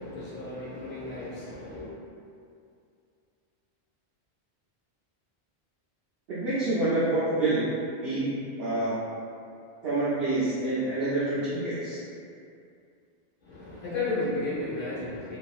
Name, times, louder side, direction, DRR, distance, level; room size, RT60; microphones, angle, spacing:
voice 1, 0.0-1.9 13.4-15.4, left 2 dB, 50° left, -13 dB, 0.9 m, -33 dB
voice 2, 6.3-7.6 8.0-8.9 9.8-12.0, right 2 dB, 70° right, -11 dB, 0.7 m, -27 dB
2.6 x 2.4 x 2.3 m, 2.4 s
omnidirectional pair, 1.1 m